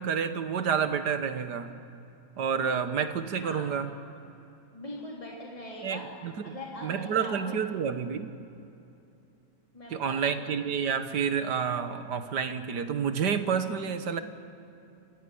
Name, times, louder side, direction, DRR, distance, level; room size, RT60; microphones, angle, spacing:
voice 1, 0.0-1.7 2.4-3.9 5.8-6.6 6.8-8.3 9.9-14.2, right 7 dB, 80° right, 10 dB, 1.8 m, -29 dB
voice 2, 4.7-6.1 6.4-7.5 9.7-10.4, left 1 dB, 20° left, -3 dB, 3.3 m, -42 dB
26.5 x 16.0 x 10.0 m, 2.8 s
omnidirectional pair, 1.8 m